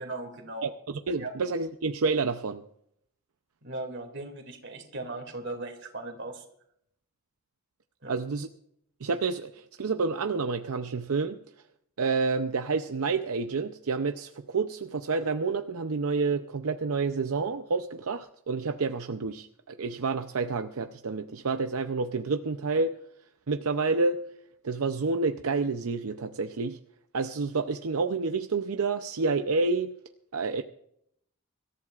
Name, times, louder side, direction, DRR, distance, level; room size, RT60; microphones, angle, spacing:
voice 1, 0.0-0.7 1.2-1.3 3.6-6.4 8.0-8.1, right 2 dB, 55° right, 5 dB, 2.5 m, -38 dB
voice 2, 0.6-2.6 8.1-8.5 9.0-11.4 12.0-22.9 23.5-24.2 24.6-26.8 27.1-29.9 30.3-30.6, right 4 dB, 80° right, 7 dB, 0.6 m, -29 dB
25.0 x 14.0 x 2.5 m, 0.71 s
head